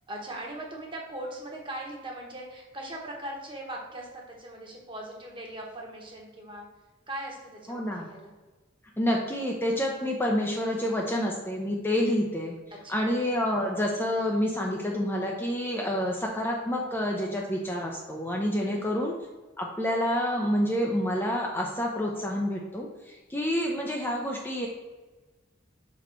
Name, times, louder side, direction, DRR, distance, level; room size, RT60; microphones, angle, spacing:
voice 1, 0.0-6.7 7.1-8.3 12.8-13.1 18.6-19.1, right 1 dB, 25° right, -1 dB, 1.2 m, -40 dB
voice 2, 7.7-8.1 9.0-12.5 12.9-19.1 19.6-24.7, equal, 10° left, -1 dB, 0.5 m, -28 dB
5.8 x 4.2 x 4.4 m, 1.2 s
head